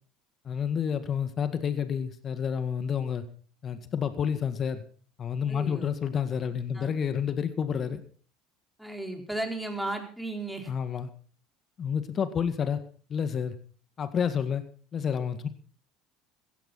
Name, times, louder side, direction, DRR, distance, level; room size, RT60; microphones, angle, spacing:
voice 1, 0.5-3.2 3.6-4.8 5.2-8.0 10.7-11.1 11.8-12.8 13.1-13.6 14.0-14.6 14.9-15.5, left 7 dB, 40° left, 1.8 m, -29 dB
voice 2, 5.5-5.9 6.7-6.9 8.8-10.7, right 2 dB, 5° right, 4.4 m, -35 dB
16.5 x 15.0 x 4.2 m
hypercardioid pair, 75°, 0 cm